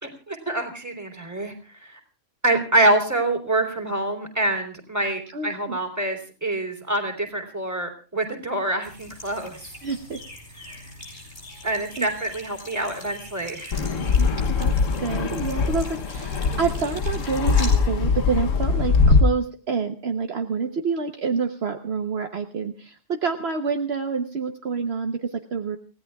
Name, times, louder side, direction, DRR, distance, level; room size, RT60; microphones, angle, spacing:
voice 1, 0.0-2.0 2.4-9.7 10.6-10.8 11.6-13.8, right 1 dB, 15° right, 2 dB, 3.3 m, -26 dB
voice 2, 5.3-5.8 9.8-10.2 10.8-10.9 12.0-12.1 14.2-25.8, right 5 dB, 55° right, 5 dB, 1.2 m, -28 dB
sound 1, 8.8-17.9, left 1 dB, 60° left, 5.1 m, -42 dB
Fixed-wing aircraft airplane, 13.7-19.2, left 4 dB, 85° left, 1.4 m, -22 dB
29.0 x 16.5 x 2.3 m, 0.37 s
omnidirectional pair, 1.3 m